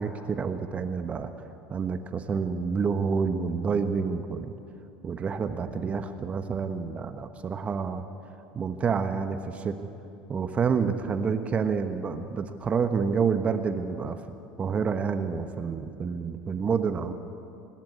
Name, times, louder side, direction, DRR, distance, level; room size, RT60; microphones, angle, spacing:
voice 1, 0.0-4.5 5.0-8.0 8.5-9.8 10.3-14.2 14.6-17.1, right 5 dB, 30° right, 8 dB, 1.1 m, -28 dB
25.5 x 12.0 x 8.6 m, 2.8 s
hypercardioid pair, 75°, 4 cm